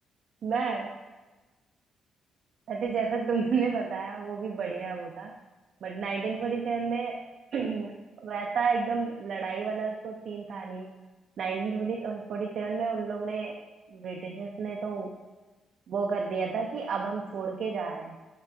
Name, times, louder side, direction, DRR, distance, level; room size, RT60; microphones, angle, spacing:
voice 1, 0.4-0.9 2.7-5.3 5.8-7.2 7.5-10.9 11.4-13.6 13.9-15.1 15.9-18.2, right 5 dB, 60° right, 0 dB, 0.4 m, -31 dB
6.4 x 3.2 x 2.5 m, 1.2 s
hypercardioid pair, 40°, 0 cm